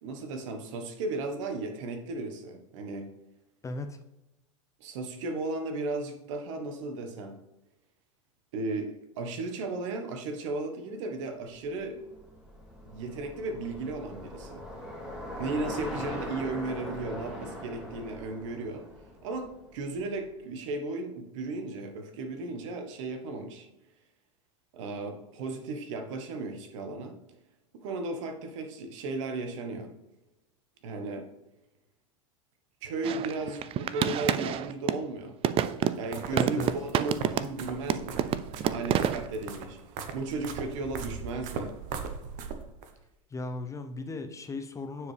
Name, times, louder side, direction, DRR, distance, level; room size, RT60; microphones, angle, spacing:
voice 1, 0.0-3.1 4.8-7.4 8.5-12.0 12.8-14.6 15.4-18.8 19.2-23.7 24.7-27.2 27.7-29.9 30.8-31.3 32.8-35.3 36.0-38.2 38.7-39.8 40.1-41.7, right 3 dB, 70° right, 6 dB, 1.3 m, -35 dB
voice 2, 3.6-4.0 36.3-36.7 43.3-45.1, left 2 dB, 20° left, 7 dB, 0.7 m, -36 dB
Bicycle, 11.6-20.0, equal, 5° right, 2.4 m, -41 dB
sound 1, 33.0-35.1 35.4-37.6 37.9-39.3, right 10 dB, 35° right, 0.4 m, -28 dB
sound 2, 35.6-42.9, right 6 dB, 50° right, 1.0 m, -39 dB
9.3 x 4.8 x 3.4 m, 0.96 s
hypercardioid pair, 95°, 17 cm